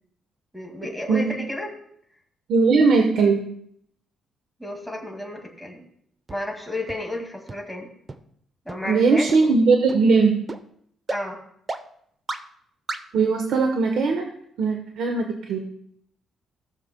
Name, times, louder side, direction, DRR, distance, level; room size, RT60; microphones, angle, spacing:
voice 1, 0.5-1.8 4.6-5.9 6.3-7.9 8.7-9.5 11.1-11.4, left 1 dB, ahead, 1 dB, 2.0 m, -32 dB
voice 2, 2.5-3.4 8.9-10.3 13.1-14.2 14.6-15.7, right 4 dB, 75° right, 3 dB, 1.0 m, -19 dB
sound 1, 6.3-6.4 6.9-7.0 7.5-7.6 8.1-8.2 8.7-8.8 9.3-9.4 9.9-10.0 10.5-10.6 11.1-11.2 11.7-11.8 12.3-12.4 12.9-13.0, right 3 dB, 30° right, 0.7 m, -31 dB
18.0 x 6.7 x 2.2 m, 0.68 s
cardioid pair, 90°, 0 cm